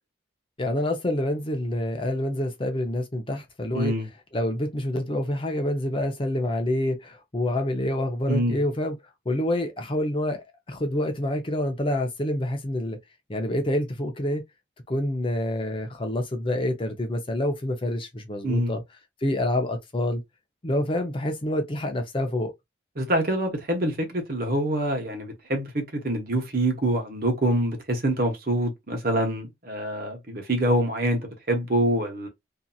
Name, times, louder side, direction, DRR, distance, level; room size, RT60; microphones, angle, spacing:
voice 1, 0.6-3.9 4.3-9.0 9.3-13.0 13.3-14.4 14.9-18.8 19.2-20.2 20.6-22.5, left 1 dB, 30° left, 0.5 m, -27 dB
voice 2, 3.7-4.1 8.3-8.6 18.4-18.7 23.0-32.3, right 1 dB, 50° right, 1.0 m, -25 dB
2.7 x 2.7 x 2.3 m
head